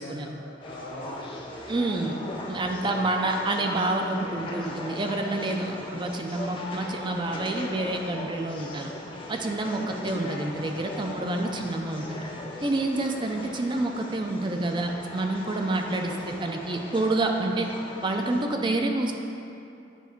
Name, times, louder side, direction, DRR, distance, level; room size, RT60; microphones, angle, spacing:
voice 1, 0.0-1.7 9.8-10.2 11.3-11.7, equal, 85° left, -4 dB, 1.4 m, -43 dB
sound 1, 0.6-18.4, left 1 dB, 30° left, 0.7 m, -39 dB
voice 2, 1.7-2.2 2.5-8.9 9.3-12.3 12.6-17.7 18.0-19.1, right 2 dB, 25° right, 3 dB, 0.4 m, -28 dB
9.2 x 3.4 x 4.4 m, 2.6 s
head